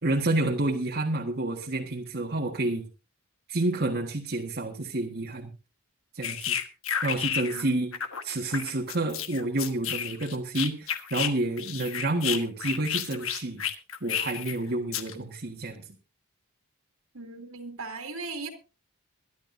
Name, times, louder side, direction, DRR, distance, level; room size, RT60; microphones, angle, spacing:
voice 1, 0.0-2.9 3.5-5.5 6.1-6.5 7.0-7.9 8.2-13.6 14.0-15.9, right 2 dB, 45° right, 1.7 m, -29 dB
sound 1, 6.2-7.7 7.9-11.3 11.6-14.5 14.9-15.1, left 9 dB, 65° left, 1.4 m, -31 dB
voice 2, 7.4-7.9 17.1-18.5, right 3 dB, 70° right, 2.5 m, -38 dB
23.0 x 11.5 x 2.7 m
head